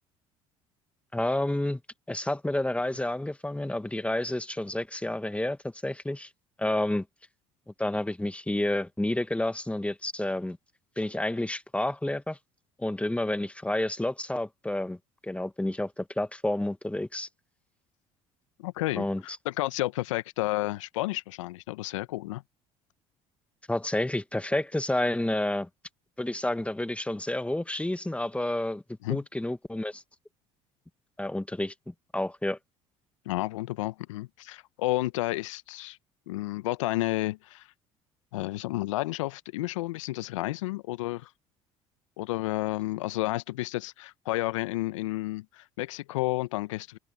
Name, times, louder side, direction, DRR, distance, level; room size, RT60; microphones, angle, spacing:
voice 1, 1.1-1.8 2.1-6.3 6.6-7.0 7.8-10.6 11.0-12.4 12.8-15.0 15.2-17.3 19.0-19.2 23.7-25.7 26.2-28.8 29.1-30.0 31.2-32.6, left 1 dB, 10° left, 2.0 m, -30 dB
voice 2, 18.6-22.4 29.0-29.2 33.2-36.0 36.3-37.7 38.3-41.3 42.2-47.0, left 18 dB, 80° left, 1.2 m, -31 dB
hypercardioid pair, 65°, 16 cm